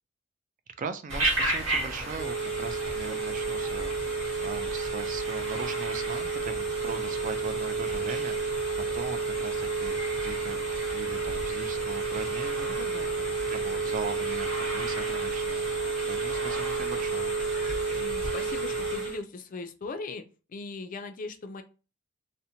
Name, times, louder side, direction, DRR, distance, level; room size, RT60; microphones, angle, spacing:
voice 1, 0.8-12.8 13.2-17.3, right 5 dB, 40° right, 9 dB, 0.3 m, -40 dB
Telephone, 1.1-19.2, right 3 dB, 90° right, 1.1 m, -30 dB
voice 2, 12.7-13.4 17.9-20.2 20.5-21.6, left 3 dB, 40° left, 8 dB, 0.4 m, -39 dB
2.7 x 2.1 x 2.7 m, 0.33 s
head